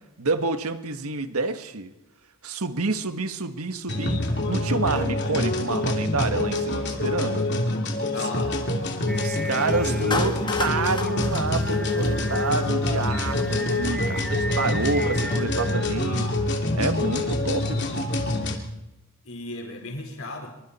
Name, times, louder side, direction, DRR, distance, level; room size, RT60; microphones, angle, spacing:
voice 1, 0.2-1.9 2.4-7.7 9.2-18.0, right 3 dB, 85° right, 9 dB, 1.6 m, -28 dB
sound 1, 3.9-18.6, left 1 dB, 50° left, 3.0 m, -26 dB
voice 2, 8.1-8.6 19.2-20.5, left 2 dB, 70° left, 2 dB, 4.5 m, -35 dB
Singing, 9.1-16.7, equal, 5° left, 1.2 m, -35 dB
Clapping, 10.1-12.5, left 3 dB, 20° left, 1.3 m, -32 dB
26.5 x 24.0 x 4.3 m, 0.96 s
head